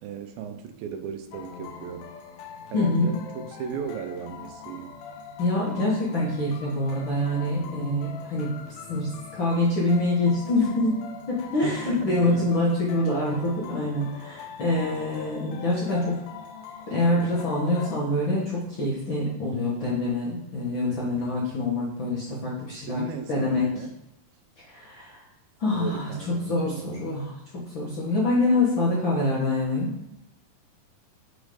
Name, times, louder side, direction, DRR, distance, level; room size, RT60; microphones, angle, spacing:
voice 1, 0.0-2.1 2.7-4.9 11.6-12.5 20.9-21.2 22.8-24.0 25.7-27.1, right 7 dB, 85° right, 6 dB, 2.5 m, -36 dB
sound 1, 1.3-18.0, left 6 dB, 80° left, 2.4 m, -42 dB
voice 2, 2.7-3.1 5.4-8.5 8.9-11.0 11.3-16.2 16.9-23.0 23.3-23.7 24.6-25.2 25.6-26.1 26.5-27.4 27.7-29.9, left 2 dB, 50° left, -7 dB, 1.4 m, -25 dB
6.2 x 4.1 x 4.9 m, 0.88 s
omnidirectional pair, 4.1 m